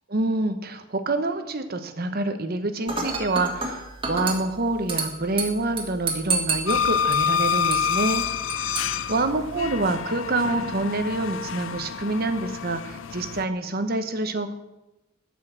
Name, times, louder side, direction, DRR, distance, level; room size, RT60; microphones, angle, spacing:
voice 1, 0.1-8.2 8.5-14.5, right 2 dB, 50° right, 9 dB, 1.0 m, -27 dB
Dishes pots and pans / Glass, 2.9-9.9, right 3 dB, 25° right, 1.9 m, -32 dB
sound 1, 6.7-13.4, left 7 dB, 70° left, 0.5 m, -27 dB
12.0 x 5.6 x 7.5 m, 0.97 s
head